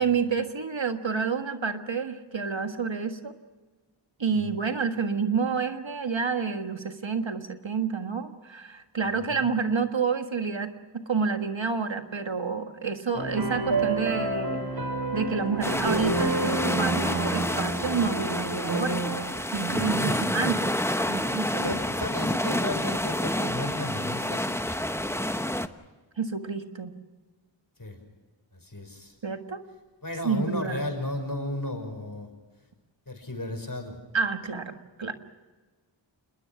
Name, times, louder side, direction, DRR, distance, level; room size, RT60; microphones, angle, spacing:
voice 1, 0.0-3.3 4.2-14.6 15.1-19.0 19.5-20.7 21.1-21.8 26.2-27.0 29.2-29.6 30.2-30.8 34.1-35.1, right 5 dB, 70° right, 7 dB, 1.8 m, -29 dB
sound 1, 13.1-19.2, right 2 dB, 55° right, 5.6 m, -29 dB
sound 2, 15.6-25.7, left 1 dB, 5° left, 1.0 m, -29 dB
voice 2, 20.0-20.5 21.6-24.5 27.8-28.0 28.5-29.1 30.0-32.3 33.1-34.0, left 1 dB, 45° left, 5 dB, 5.8 m, -34 dB
27.5 x 21.0 x 6.0 m, 1.3 s
wide cardioid pair, 55°, 47 cm